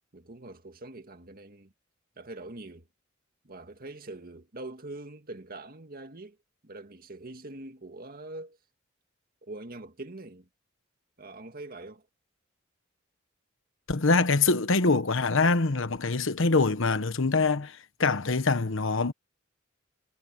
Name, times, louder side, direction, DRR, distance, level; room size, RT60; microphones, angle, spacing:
voice 1, 0.1-1.7 2.2-2.9 3.4-6.4 6.6-8.6 9.4-10.5 11.2-12.1, right 2 dB, 45° right, 2.0 m, -43 dB
voice 2, 13.9-19.1, left 3 dB, 65° left, 1.2 m, -24 dB
head